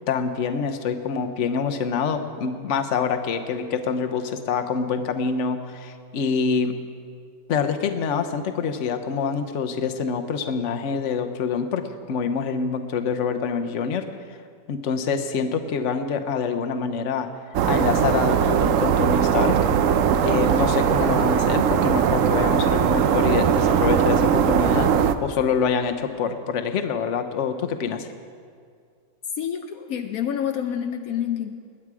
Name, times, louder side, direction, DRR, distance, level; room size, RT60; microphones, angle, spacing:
voice 1, 0.1-6.7 7.5-11.8 12.1-14.0 14.7-17.3 17.6-19.5 20.2-28.1, left 6 dB, 60° left, 7 dB, 1.1 m, -26 dB
sound 1, 17.5-25.1, right 8 dB, 70° right, 0.9 m, -20 dB
voice 2, 29.4-31.6, left 9 dB, 75° left, 6 dB, 1.1 m, -28 dB
20.0 x 9.7 x 4.9 m, 2.2 s
omnidirectional pair, 1.5 m